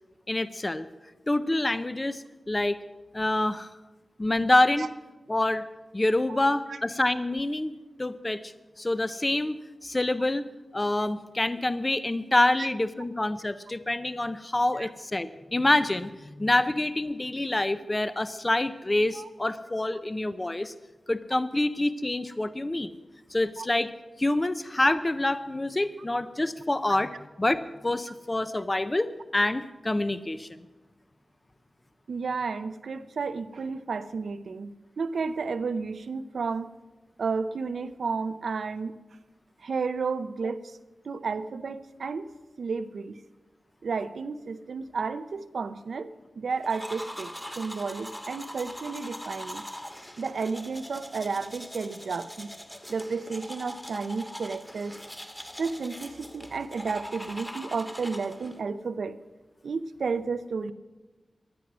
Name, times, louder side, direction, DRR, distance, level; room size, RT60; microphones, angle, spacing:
voice 1, 0.3-0.9 1.3-2.8 3.1-3.7 4.2-4.9 5.3-5.6 5.9-7.7 8.0-9.6 9.8-10.4 10.7-20.7 21.1-22.9 23.3-23.9 24.2-27.1 27.4-30.6, left 2 dB, 25° left, 12 dB, 0.6 m, -26 dB
voice 2, 32.1-36.7 37.2-38.9 39.6-40.8 41.0-42.3 42.6-43.2 43.8-49.6 50.2-52.5 52.9-55.0 55.6-59.2 59.6-60.7, right 4 dB, 85° right, 12 dB, 0.6 m, -32 dB
sound 1, 46.6-58.6, equal, 10° left, 1.6 m, -42 dB
15.5 x 11.0 x 6.1 m, 1.2 s
wide cardioid pair, 70°, 0 cm